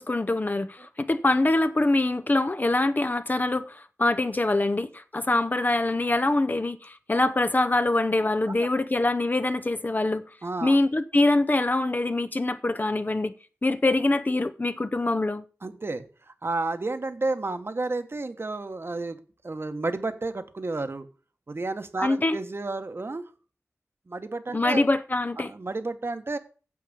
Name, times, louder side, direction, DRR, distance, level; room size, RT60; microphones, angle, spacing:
voice 1, 0.0-10.2 10.6-13.3 13.6-15.4 22.0-22.4 24.5-25.5, left 2 dB, 35° left, 0.7 m, -24 dB
voice 2, 10.4-10.8 15.6-16.1 16.4-19.2 19.4-21.1 21.5-23.3 24.1-24.8 25.4-26.4, right 3 dB, 45° right, 1.2 m, -31 dB
8.7 x 7.6 x 6.9 m
wide cardioid pair, 85°, 5 cm